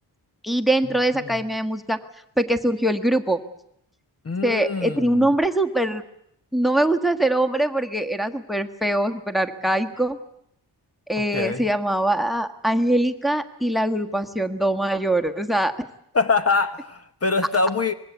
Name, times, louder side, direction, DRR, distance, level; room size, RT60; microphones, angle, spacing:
voice 1, 0.4-2.0 2.4-3.4 4.4-6.0 6.5-10.2 11.1-15.9, right 1 dB, ahead, 9 dB, 1.5 m, -22 dB
voice 2, 4.2-5.3 11.3-11.6 16.1-17.9, left 4 dB, 35° left, 9 dB, 1.2 m, -24 dB
25.5 x 21.5 x 8.2 m, 0.74 s
wide cardioid pair, 115°, 41 cm